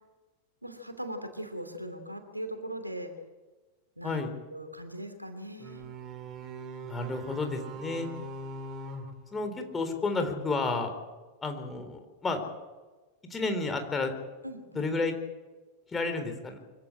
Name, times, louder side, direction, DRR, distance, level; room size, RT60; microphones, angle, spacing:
voice 1, 0.6-3.1 4.0-4.2 4.5-5.8 14.4-14.8, right 1 dB, 85° right, 7 dB, 3.0 m, -39 dB
sound 1, 5.6-10.1, right 2 dB, 30° right, 3.0 m, -42 dB
voice 2, 6.8-8.1 9.3-10.9 11.4-12.5 13.3-14.1 14.7-15.1 15.9-16.6, left 3 dB, 15° left, 6 dB, 3.9 m, -31 dB
24.5 x 17.0 x 8.8 m, 1.2 s
figure-of-eight pair, 90°, 0 cm